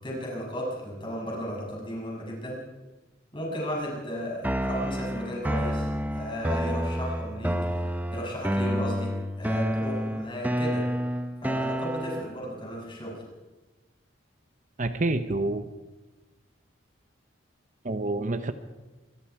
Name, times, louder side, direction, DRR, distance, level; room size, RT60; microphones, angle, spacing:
voice 1, 0.0-2.6 3.3-7.8 8.1-10.8 11.4-13.2, equal, 25° left, -2 dB, 7.0 m, -35 dB
sound 1, 4.4-12.4, equal, 10° right, 0.7 m, -29 dB
voice 2, 14.8-15.6 17.8-18.5, right 2 dB, 40° right, 10 dB, 0.9 m, -27 dB
25.0 x 22.0 x 4.8 m, 1.2 s
head